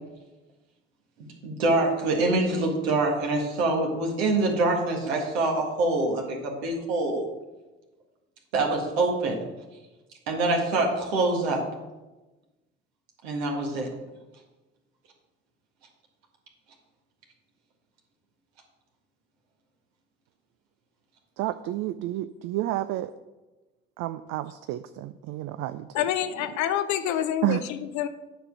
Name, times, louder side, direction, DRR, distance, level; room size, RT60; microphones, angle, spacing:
voice 1, 1.2-7.3 8.5-9.4 10.3-11.6 13.2-13.9, right 2 dB, 75° right, 1 dB, 1.8 m, -25 dB
voice 2, 21.4-23.1 24.0-26.1 27.4-27.6, right 15 dB, 60° right, 11 dB, 0.5 m, -30 dB
voice 3, 25.9-28.1, left 11 dB, 60° left, 11 dB, 0.7 m, -27 dB
9.9 x 5.2 x 6.1 m, 1.1 s
hypercardioid pair, 50°, 31 cm